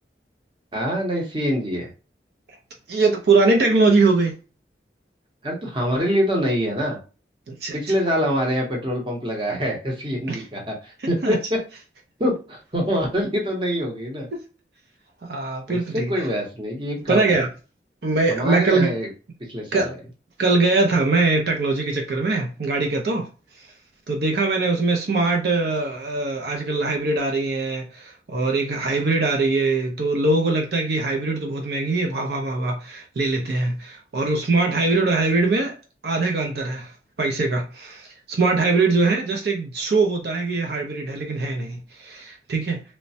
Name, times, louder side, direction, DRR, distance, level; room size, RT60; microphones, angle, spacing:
voice 1, 0.7-1.9 5.4-7.0 7.7-11.6 12.2-14.3 15.7-17.4 18.3-19.1 19.5-19.9, equal, 30° right, 0.7 m, -25 dB
voice 2, 2.9-4.3 7.5-7.8 10.3-10.4 11.2-11.4 14.3-14.4 15.2-16.1 17.1-17.5 18.0-18.9 19.7-19.9 20.4-23.3 23.6-23.7 24.1-35.8 36.0-36.9 37.2-42.8, right 3 dB, 65° right, 0.5 m, -22 dB
3.1 x 2.1 x 2.6 m
head